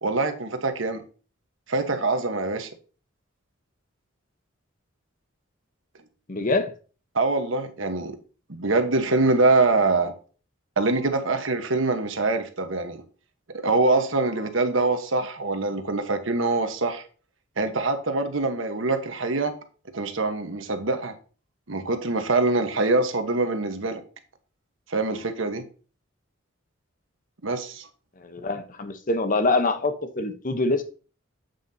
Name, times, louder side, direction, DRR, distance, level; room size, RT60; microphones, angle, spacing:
voice 1, 0.0-1.0 1.7-2.7 7.1-8.2 8.5-10.1 10.8-13.0 13.6-17.0 17.6-19.5 19.9-21.1 21.7-24.0 24.9-25.6 27.4-27.9, right 3 dB, 75° right, 7 dB, 1.2 m, -24 dB
voice 2, 6.3-6.7 28.2-30.8, left 2 dB, 40° left, 8 dB, 0.9 m, -25 dB
8.3 x 7.7 x 2.8 m, 0.37 s
head